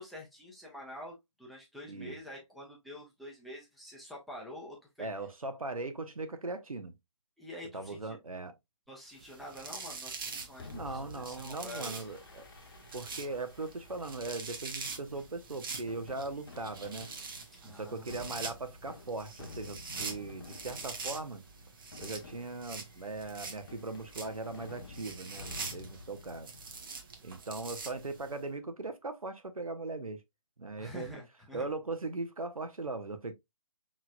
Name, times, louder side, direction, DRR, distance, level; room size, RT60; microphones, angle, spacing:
voice 1, 0.0-5.1 7.4-8.2 8.9-12.1 17.6-18.1 30.8-31.7, left 1 dB, ahead, 0.6 m, -47 dB
voice 2, 5.0-6.9 7.7-8.5 10.7-12.4 12.9-17.1 17.6-21.4 22.0-26.5 27.2-30.2 30.6-31.2 31.5-33.3, right 3 dB, 85° right, 0.9 m, -39 dB
sound 1, 9.2-28.4, right 4 dB, 40° right, 1.0 m, -45 dB
Fireworks, 10.6-26.7, left 4 dB, 40° left, 0.9 m, -51 dB
5.6 x 3.1 x 2.3 m
figure-of-eight pair, 150°, 18 cm